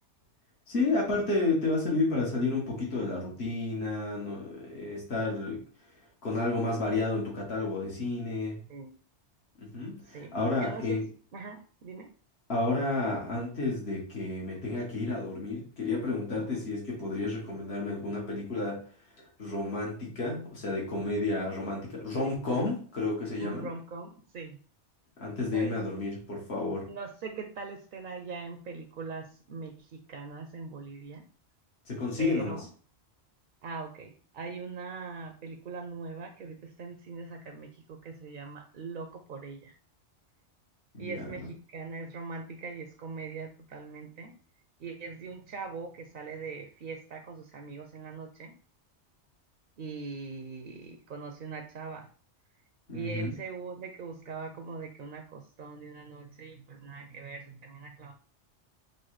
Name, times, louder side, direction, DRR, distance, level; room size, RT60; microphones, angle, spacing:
voice 1, 0.7-5.6 6.2-8.6 9.6-11.0 12.5-18.8 19.4-23.7 25.2-26.9 31.9-32.6 40.9-41.3 52.9-53.3, left 2 dB, 65° left, -3 dB, 1.6 m, -31 dB
voice 2, 10.0-11.0 11.3-12.1 16.4-16.7 22.2-22.4 23.4-24.6 25.5-25.7 26.9-31.2 32.2-32.7 33.6-39.7 41.0-44.3 44.8-48.5 49.8-52.1 52.9-58.1, right 4 dB, 60° right, 4 dB, 0.6 m, -41 dB
6.2 x 2.2 x 3.1 m, 0.43 s
omnidirectional pair, 1.2 m